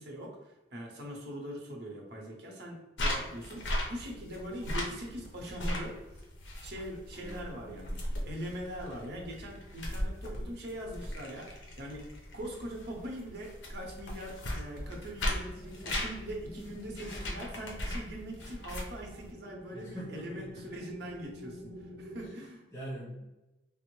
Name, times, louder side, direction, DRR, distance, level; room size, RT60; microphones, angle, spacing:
voice 1, 0.0-6.0 6.6-12.1 12.3-22.6, equal, 60° right, 0 dB, 0.8 m, -42 dB
Flipping Through Notebook, 3.0-19.3, left 1 dB, 85° left, 0.7 m, -38 dB
voice 2, 7.2-8.3 19.7-20.6 22.2-22.3 22.7-23.3, right 1 dB, 15° left, -7 dB, 0.5 m, -44 dB
sound 1, 15.4-22.3, equal, 70° left, 1.3 m, -49 dB
3.5 x 2.0 x 3.0 m, 1.0 s
head